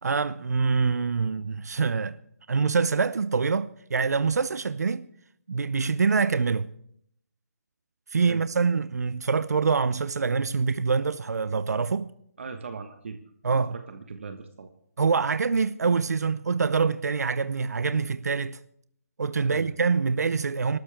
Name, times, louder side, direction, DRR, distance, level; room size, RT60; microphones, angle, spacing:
voice 1, 0.0-2.2 2.5-5.1 5.5-6.7 8.1-12.1 13.4-13.7 15.0-18.6 19.2-20.8, right 5 dB, 85° right, 0.7 m, -25 dB
voice 2, 12.4-13.2 13.7-14.7 19.4-19.7, right 5 dB, 50° right, 1.3 m, -39 dB
26.5 x 13.0 x 3.5 m
hypercardioid pair, 175°, 9 cm